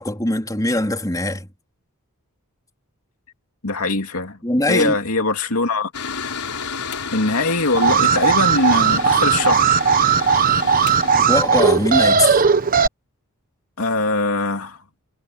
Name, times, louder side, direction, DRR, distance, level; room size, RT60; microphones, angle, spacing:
voice 1, 0.0-1.5 4.4-5.0 11.3-12.3, left 1 dB, 15° left, 3.8 m, -21 dB
voice 2, 3.6-4.4 4.7-5.9 7.1-9.8 13.8-14.8, left 2 dB, 70° left, 2.8 m, -21 dB
Mechanical fan, 5.9-11.5, left 6 dB, 85° left, 4.1 m, -31 dB
Alarm, 7.7-12.9, right 6 dB, 40° right, 1.2 m, -17 dB
head